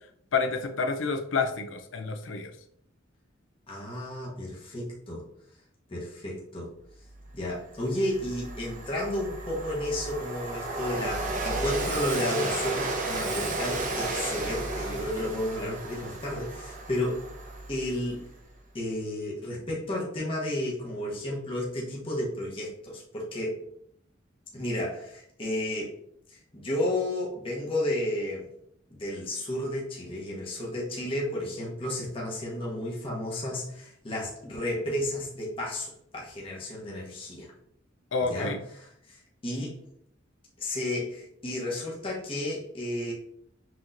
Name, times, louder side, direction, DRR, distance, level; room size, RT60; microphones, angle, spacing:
voice 1, 0.3-2.5 38.1-38.6, left 4 dB, 70° left, 6 dB, 0.5 m, -29 dB
voice 2, 3.7-5.2 5.9-6.7 7.3-17.2 17.7-18.2 18.7-23.6 24.5-26.0 26.3-28.5 28.9-37.5 38.2-39.8 40.6-43.1, left 1 dB, 30° left, -4 dB, 1.0 m, -32 dB
Train, 7.3-7.4 7.8-18.2, right 2 dB, 40° right, 0.7 m, -33 dB
6.0 x 3.0 x 2.6 m, 0.69 s
head